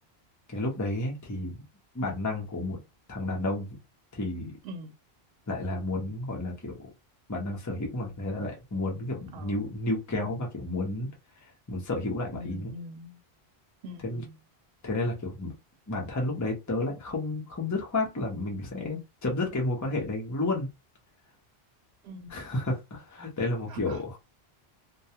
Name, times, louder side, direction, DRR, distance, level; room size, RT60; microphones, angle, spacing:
voice 1, 0.5-1.6 1.9-2.8 3.1-3.7 4.1-4.5 5.5-6.9 7.3-11.1 11.4-12.7 14.0-14.2 14.8-15.5 15.9-20.7 22.3-24.0, left 2 dB, 20° left, 0.7 m, -31 dB
voice 2, 4.6-4.9 9.3-9.6 12.3-13.2 13.8-14.4 22.0-22.3 23.7-24.2, equal, 75° right, 0.8 m, -43 dB
2.3 x 2.2 x 2.8 m
omnidirectional pair, 1.1 m